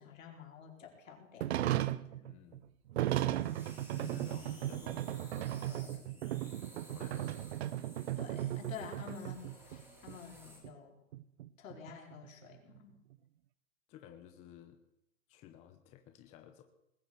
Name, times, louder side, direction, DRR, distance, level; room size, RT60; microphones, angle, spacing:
voice 1, 0.0-2.2 3.9-4.1 8.2-11.0 11.6-12.9, left 7 dB, 80° left, 1 dB, 4.6 m, -50 dB
sound 1, 1.4-9.8 10.1-10.2 10.6-10.7 11.1-12.8, right 13 dB, 55° right, 0.7 m, -36 dB
voice 2, 2.2-2.6 3.9-6.6 6.9-7.5 13.9-14.8 15.3-16.6, left 10 dB, 15° left, 6 dB, 0.8 m, -54 dB
sound 2, 2.6-10.6, equal, 5° right, 2.9 m, -56 dB
20.0 x 7.7 x 7.8 m, 0.85 s
hypercardioid pair, 160°, 39 cm